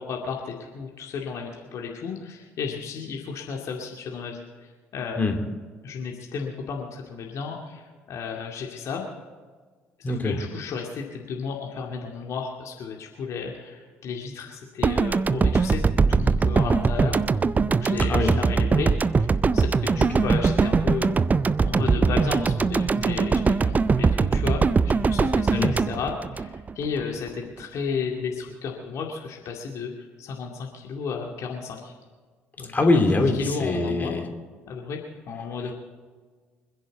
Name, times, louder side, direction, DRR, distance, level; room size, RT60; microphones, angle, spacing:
voice 1, 0.0-5.5 5.8-9.0 10.1-18.9 19.2-21.1 21.6-29.9 30.2-31.9 32.6-32.8 33.4-34.2 34.7-35.0 35.3-35.7, left 5 dB, 50° left, 0 dB, 2.3 m, -33 dB
voice 2, 10.0-10.4 18.1-18.3 20.0-20.2 25.5-25.8 32.7-34.3 35.6-35.7, left 2 dB, 25° left, 3 dB, 3.0 m, -23 dB
sound 1, 14.8-27.0, right 4 dB, 25° right, 0.5 m, -22 dB
26.0 x 10.5 x 4.0 m, 1.5 s
figure-of-eight pair, 50°, 7 cm